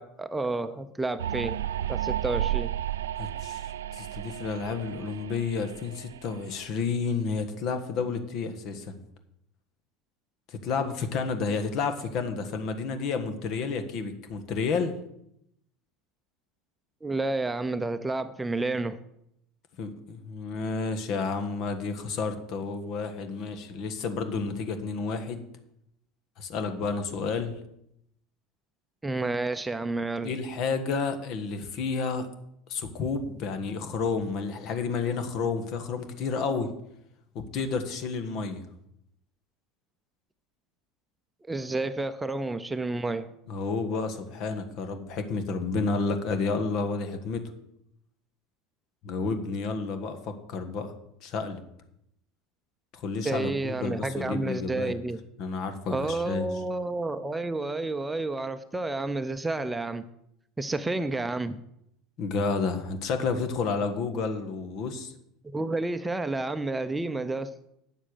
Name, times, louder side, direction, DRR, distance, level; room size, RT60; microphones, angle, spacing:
voice 1, 0.0-1.6 1.9-2.7 17.0-19.0 29.0-30.3 41.5-43.3 53.2-55.2 55.9-60.0 60.6-61.6 65.4-67.5, right 2 dB, 15° right, 10 dB, 0.7 m, -30 dB
sound 1, 1.2-6.6, right 12 dB, 80° right, 0.3 m, -33 dB
voice 2, 3.2-9.0 10.5-14.9 19.8-25.4 26.4-27.5 30.2-32.3 32.7-36.7 37.3-38.6 43.5-47.5 49.0-50.9 51.2-51.6 52.9-54.9 55.4-56.5 62.2-65.1, left 4 dB, 55° left, 8 dB, 1.5 m, -30 dB
9.0 x 7.3 x 6.7 m, 0.77 s
hypercardioid pair, 80°, 0 cm